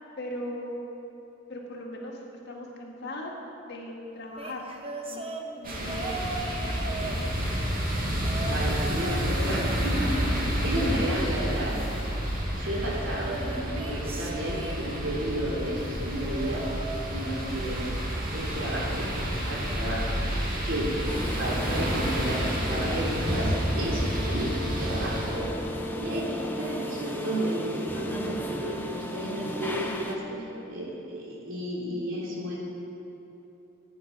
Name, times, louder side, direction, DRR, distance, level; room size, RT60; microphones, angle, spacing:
voice 1, 0.2-0.9 1.5-3.3 3.7-4.6 5.1-5.3 5.5-7.2 10.8-11.1 20.9-21.1 30.3-30.9, left 1 dB, 60° left, -1 dB, 2.1 m, -39 dB
sound 1, 4.3-7.7 8.2-9.2 9.5-11.0 13.1-15.3 16.1-17.6 18.0-18.3 19.5-19.6, right 2 dB, 30° right, 1.0 m, -39 dB
sound 2, 5.6-25.4, equal, 50° right, 2.1 m, -30 dB
voice 2, 8.5-11.8 12.6-16.6 17.1-17.8 18.3-20.3 20.7-20.9 21.4-25.5 26.0-30.2 30.7-32.6, equal, 80° right, -4 dB, 3.2 m, -32 dB
sound 3, 21.1-30.1, equal, 10° left, 0.9 m, -35 dB
15.0 x 9.3 x 6.1 m, 3.0 s
head